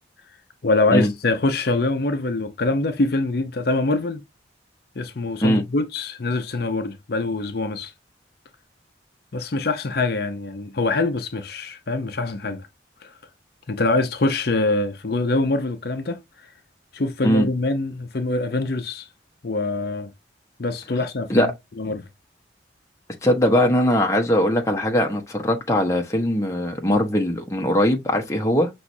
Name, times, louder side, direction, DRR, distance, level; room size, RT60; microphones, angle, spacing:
voice 1, 0.6-4.2 5.0-7.9 9.3-12.7 13.0-13.1 13.7-16.5 16.9-19.1 19.4-20.1 20.6-21.5 21.8-22.1, left 2 dB, 55° left, 0.6 m, -24 dB
voice 2, 23.2-28.7, equal, 15° left, 0.9 m, -20 dB
6.0 x 3.1 x 2.7 m
head